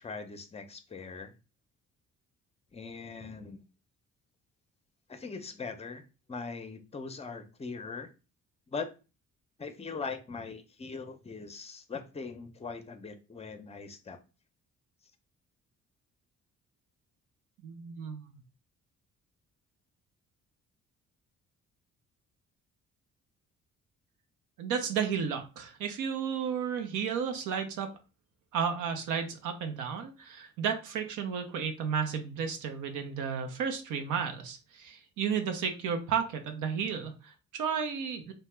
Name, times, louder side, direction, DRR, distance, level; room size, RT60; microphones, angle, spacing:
voice 1, 0.0-1.3 2.7-3.6 5.1-8.1 8.7-8.9 9.6-14.2, left 4 dB, 20° left, 8 dB, 0.5 m, -41 dB
voice 2, 17.6-18.3 24.6-27.9 28.5-38.3, right 7 dB, 90° right, 5 dB, 0.7 m, -33 dB
2.8 x 2.1 x 3.2 m, 0.31 s
cardioid pair, 90°, 30 cm